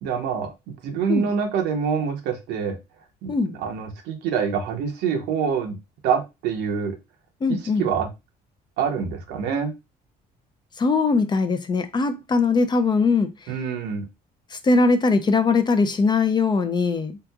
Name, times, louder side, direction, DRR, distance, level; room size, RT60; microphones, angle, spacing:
voice 1, 0.0-2.8 3.2-5.8 6.0-7.0 7.5-8.1 8.8-9.7 13.5-14.1, right 6 dB, 90° right, 0.8 m, -26 dB
voice 2, 7.4-7.9 10.8-13.3 14.5-17.2, left 4 dB, 25° left, 0.4 m, -21 dB
3.5 x 2.8 x 2.4 m
cardioid pair, 110°, 17 cm